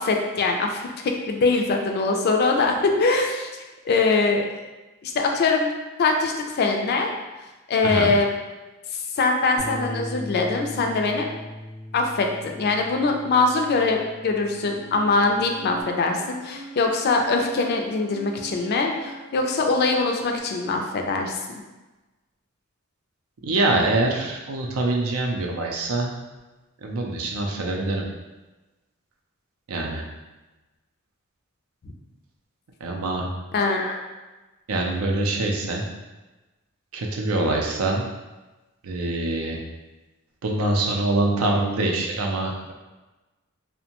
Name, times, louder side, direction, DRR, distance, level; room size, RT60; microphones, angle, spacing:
voice 1, 0.0-3.5 3.9-4.6 5.0-5.7 6.0-7.1 7.7-8.3 9.2-11.3 11.9-21.4 31.8-31.9 33.5-34.0, left 3 dB, 50° left, 3 dB, 0.3 m, -22 dB
Bass guitar, 9.6-15.8, left 1 dB, 25° right, 0.6 m, -38 dB
sound 1, 14.5-20.4, right 2 dB, 85° left, 0.8 m, -42 dB
voice 2, 23.4-26.1 26.8-28.0 29.7-30.0 32.8-33.3 34.7-35.8 36.9-38.0 38.8-39.6 40.4-42.7, right 2 dB, 85° right, 0 dB, 0.5 m, -24 dB
2.6 x 2.1 x 2.8 m, 1.1 s
head